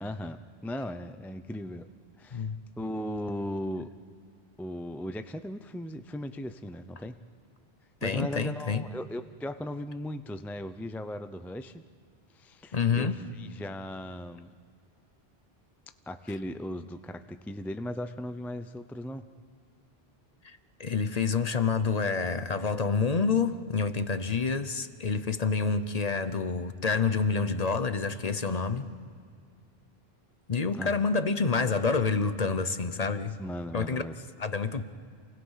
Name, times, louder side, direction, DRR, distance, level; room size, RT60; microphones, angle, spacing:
voice 1, 0.0-1.9 2.2-2.5 2.8-3.9 4.6-7.2 8.0-11.8 12.3-14.5 16.1-19.3 30.7-31.0 33.4-34.2, left 1 dB, ahead, 10 dB, 0.4 m, -37 dB
voice 2, 8.0-8.9 12.7-13.2 20.4-28.9 30.5-33.4 33.7-34.0 34.4-34.8, left 5 dB, 40° left, 11 dB, 0.9 m, -28 dB
28.0 x 19.5 x 5.7 m, 2.2 s
omnidirectional pair, 1.1 m